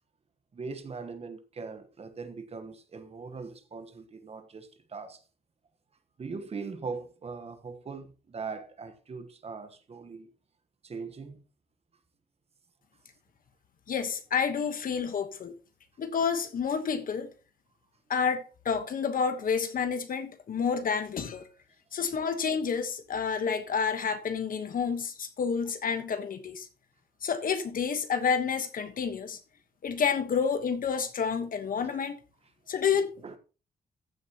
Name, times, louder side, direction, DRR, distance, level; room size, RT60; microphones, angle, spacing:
voice 1, 0.5-5.2 6.2-10.3 10.8-11.4 33.2-33.4, right 4 dB, 40° right, 1.3 m, -40 dB
voice 2, 13.9-15.5 16.0-17.3 18.1-21.5 21.9-26.7 27.2-29.4 29.8-32.2 32.7-33.1, left 6 dB, 55° left, 1.3 m, -29 dB
15.0 x 7.5 x 3.0 m
wide cardioid pair, 140°, 17 cm